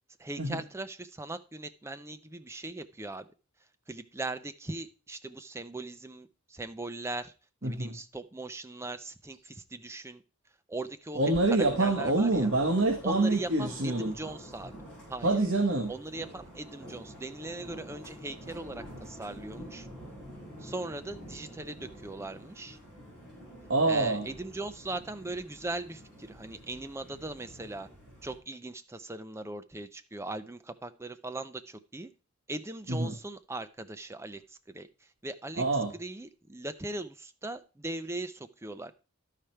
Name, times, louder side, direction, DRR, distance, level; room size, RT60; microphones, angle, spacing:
voice 1, 0.2-3.3 3.9-7.3 7.6-10.2 10.7-12.5 13.0-14.7 15.1-15.4 15.9-19.9 20.6-22.8 23.8-27.9 28.2-32.1 32.5-35.6 35.9-38.9, right 2 dB, 15° right, 10 dB, 0.5 m, -39 dB
voice 2, 7.6-7.9 11.1-14.1 15.2-15.9 23.7-24.3 32.9-33.1 35.6-35.9, right 2 dB, 60° right, 1 dB, 1.2 m, -26 dB
sound 1, 11.6-28.4, equal, 5° left, 4.2 m, -48 dB
12.0 x 5.0 x 4.4 m, 0.33 s
head